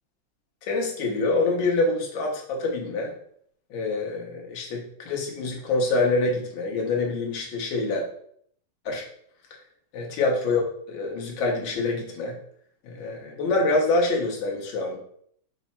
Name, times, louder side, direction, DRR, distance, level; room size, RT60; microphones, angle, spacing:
voice 1, 0.7-3.1 3.7-8.0 8.8-9.0 9.9-12.4 12.8-15.0, left 3 dB, 70° left, 0 dB, 1.7 m, -26 dB
5.5 x 2.1 x 4.2 m, 0.65 s
omnidirectional pair, 2.3 m